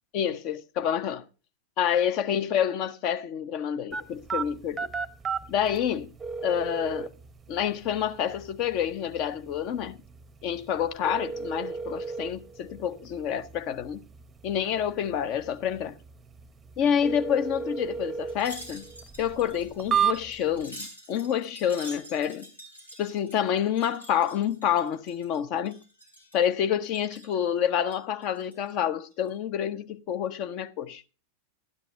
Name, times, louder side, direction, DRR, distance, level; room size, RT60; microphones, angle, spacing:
voice 1, 0.1-1.2 1.8-4.8 5.5-6.1 6.4-7.1 7.5-10.0 10.4-14.0 14.4-16.0 16.8-18.9 19.2-22.5 23.0-25.8 26.3-31.0, left 9 dB, 40° left, 0.8 m, -28 dB
sound 1, 3.9-20.6, right 6 dB, 15° right, 0.7 m, -35 dB
Wind chime, 18.3-25.4 25.7-26.5 26.8-27.4 27.8-28.7 29.1-29.3, equal, 85° left, 3.8 m, -47 dB
12.5 x 10.0 x 3.2 m
figure-of-eight pair, 90°, 0 cm